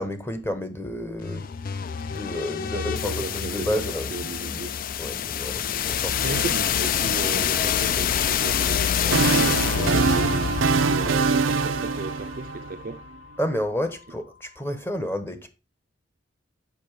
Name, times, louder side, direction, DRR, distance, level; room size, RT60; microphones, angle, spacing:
voice 1, 0.0-1.5 2.1-4.1 4.4-4.6 5.0-6.2 13.4-15.5, equal, 10° left, 0.9 m, -30 dB
sound 1, 1.2-13.1, left 8 dB, 45° left, 0.4 m, -27 dB
voice 2, 2.5-4.7 6.1-13.0, right 3 dB, 45° right, 0.5 m, -35 dB
sound 2, 8.7-12.9, right 4 dB, 90° right, 0.6 m, -23 dB
6.8 x 5.3 x 4.6 m
head